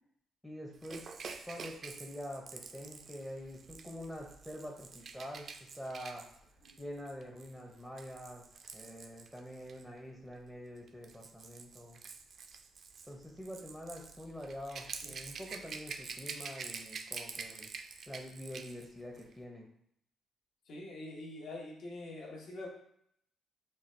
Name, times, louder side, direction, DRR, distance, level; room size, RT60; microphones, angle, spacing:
voice 1, 0.4-6.3 6.8-12.0 13.0-17.7 18.1-19.7, equal, 5° left, 0 dB, 0.6 m, -46 dB
Rattle / Rattle (instrument), 0.8-9.8 10.8-18.9 19.2-19.3, right 5 dB, 50° right, 0.3 m, -47 dB
voice 2, 20.7-22.7, left 2 dB, 65° left, -2 dB, 0.9 m, -45 dB
4.3 x 2.2 x 3.1 m, 0.69 s
cardioid pair, 90°, 0 cm